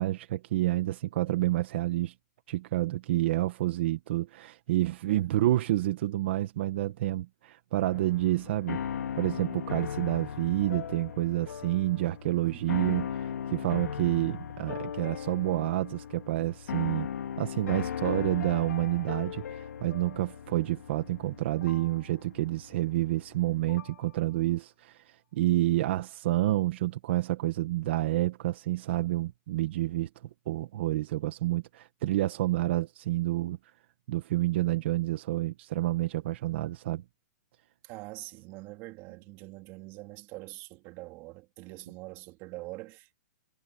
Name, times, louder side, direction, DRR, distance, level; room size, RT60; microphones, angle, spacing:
voice 1, 0.0-2.1 2.5-8.8 9.2-13.1 13.5-17.1 17.4-30.1 30.5-33.7 34.1-37.0, right 15 dB, 45° right, 1.4 m, -29 dB
voice 2, 5.1-5.5 12.4-13.1 37.8-43.2, right 21 dB, 25° right, 3.1 m, -44 dB
sound 1, 7.8-24.0, left 8 dB, 85° left, 2.2 m, -38 dB
hypercardioid pair, 165°, 8 cm